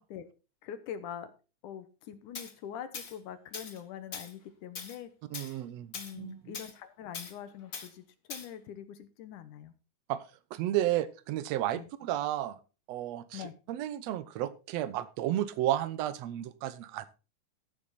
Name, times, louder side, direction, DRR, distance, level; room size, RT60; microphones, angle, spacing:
voice 1, 0.6-1.3 1.6-5.1 5.4-5.6 5.9-9.7 11.7-11.9 13.3-13.5, left 9 dB, 75° left, 11 dB, 2.5 m, -44 dB
Tools, 2.3-2.5 2.9-3.2 3.5-3.8 4.1-4.3 4.8-5.0 5.3-5.5 5.9-6.1 6.5-6.7 7.1-7.3 7.7-7.9 8.3-8.5, left 5 dB, 40° left, 1.2 m, -41 dB
voice 2, 5.3-6.6 10.1-10.2 10.5-12.6 12.9-13.4 13.7-17.1, right 13 dB, 70° right, 14 dB, 1.8 m, -32 dB
14.5 x 7.1 x 4.1 m, 0.33 s
omnidirectional pair, 3.7 m